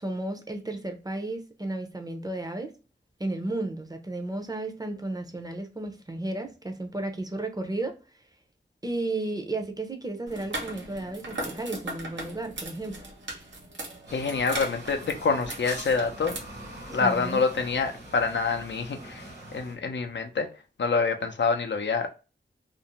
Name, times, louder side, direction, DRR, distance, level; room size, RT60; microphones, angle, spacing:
voice 1, 0.0-2.7 3.2-8.0 8.8-13.0 17.0-17.5, right 2 dB, 20° right, 0.5 m, -33 dB
sound 1, 10.3-16.4, right 2 dB, 90° right, 0.6 m, -38 dB
voice 2, 14.1-16.4 16.9-20.5 20.8-22.1, left 4 dB, 75° left, 0.5 m, -26 dB
sound 2, 14.1-19.7, right 1 dB, 60° right, 1.2 m, -43 dB
2.5 x 2.0 x 2.8 m
wide cardioid pair, 60°, 19 cm